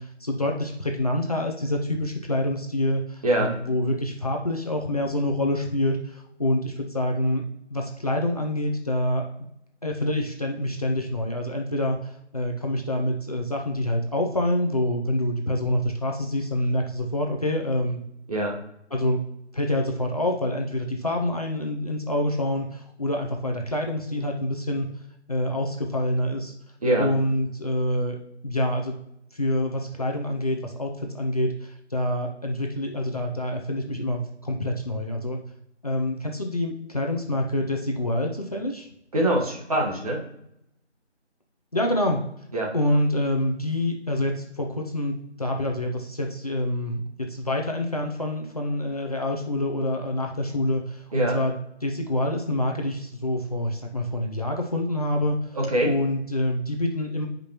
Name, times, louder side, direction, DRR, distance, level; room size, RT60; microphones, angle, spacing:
voice 1, 0.0-7.4 7.7-9.3 9.8-18.0 18.9-19.2 19.5-24.9 25.3-26.5 27.0-28.2 28.4-29.0 29.3-35.4 35.8-38.9 41.7-42.2 42.7-47.0 47.3-51.5 51.8-55.6 55.8-57.3, left 1 dB, 35° left, 1 dB, 0.8 m, -26 dB
voice 2, 3.2-3.5 18.3-18.6 26.8-27.1 39.1-40.2 42.5-42.7 51.1-51.4 55.5-55.9, right 1 dB, 30° right, -1 dB, 1.7 m, -23 dB
14.0 x 5.2 x 3.0 m, 0.80 s
figure-of-eight pair, 165°, 34 cm